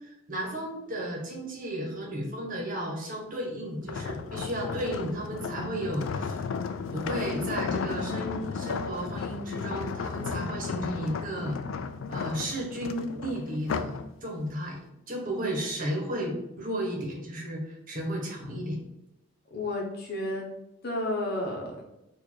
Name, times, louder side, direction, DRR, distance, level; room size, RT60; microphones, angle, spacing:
voice 1, 0.0-6.5 6.9-11.6 12.1-13.9 14.2-14.8 15.1-18.8, right 1 dB, 45° right, -1 dB, 1.1 m, -33 dB
sound 1, 3.8-14.1 14.5-14.8, left 5 dB, 85° left, 0.3 m, -34 dB
voice 2, 19.5-20.4 20.8-21.8, left 1 dB, 55° left, -1 dB, 1.1 m, -31 dB
4.3 x 2.6 x 4.5 m, 0.86 s
head